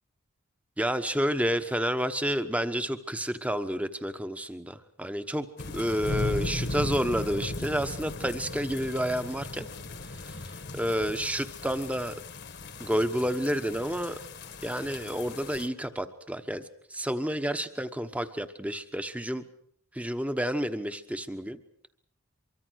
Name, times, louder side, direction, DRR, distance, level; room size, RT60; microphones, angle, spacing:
voice 1, 0.8-5.5 5.7-9.7 10.0-12.1 12.8-14.2 14.6-16.6 16.9-19.4 19.9-21.6, equal, 5° right, 10 dB, 1.1 m, -30 dB
sound 1, 5.6-15.7, left 2 dB, 50° left, 1.5 m, -37 dB
24.5 x 23.5 x 6.4 m, 0.66 s
head